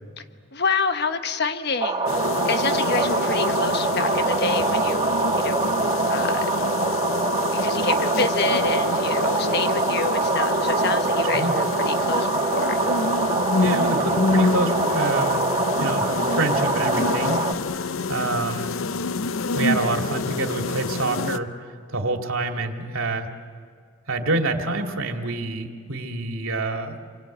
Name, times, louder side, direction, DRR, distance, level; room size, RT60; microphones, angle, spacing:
voice 1, 0.5-2.1 2.4-5.7 6.1-6.5 7.5-12.8, left 4 dB, 50° left, 8 dB, 1.3 m, -27 dB
sound 1, 1.8-17.5, right 3 dB, 25° right, 1.4 m, -24 dB
sound 2, 2.1-21.4, left 4 dB, 70° left, 0.6 m, -27 dB
voice 2, 11.2-11.6 13.6-15.5 15.8-17.4 18.1-18.7 19.5-21.5 21.9-23.3 24.1-27.0, right 2 dB, 75° right, 3 dB, 2.5 m, -27 dB
29.0 x 23.5 x 8.8 m, 2.1 s
head